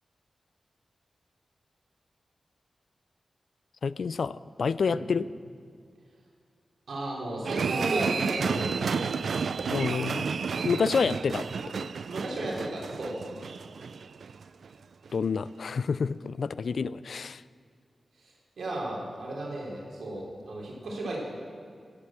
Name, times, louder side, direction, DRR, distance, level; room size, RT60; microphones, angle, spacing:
voice 1, 3.8-5.3 9.7-10.3 10.6-11.5 11.7-11.9 15.1-17.4, left 5 dB, 65° left, 17 dB, 0.3 m, -28 dB
voice 2, 6.9-8.8 12.1-13.1 18.2-21.2, right 1 dB, 90° right, -3 dB, 3.5 m, -34 dB
sound 1, 7.5-14.7 15.1-15.2, right 5 dB, 75° right, 0.4 m, -31 dB
15.0 x 8.8 x 7.3 m, 2.3 s
wide cardioid pair, 140°, 0 cm